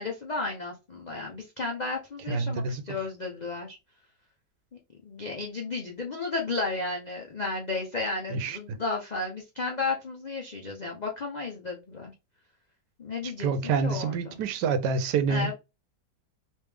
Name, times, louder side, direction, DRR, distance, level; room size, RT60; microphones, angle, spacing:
voice 1, 0.0-3.8 5.0-12.1 13.0-14.4 15.3-15.5, left 3 dB, 75° left, 0.4 m, -33 dB
voice 2, 2.3-2.8 8.3-8.6 13.4-15.5, right 5 dB, 85° right, 1.3 m, -27 dB
3.3 x 3.1 x 3.4 m
omnidirectional pair, 1.8 m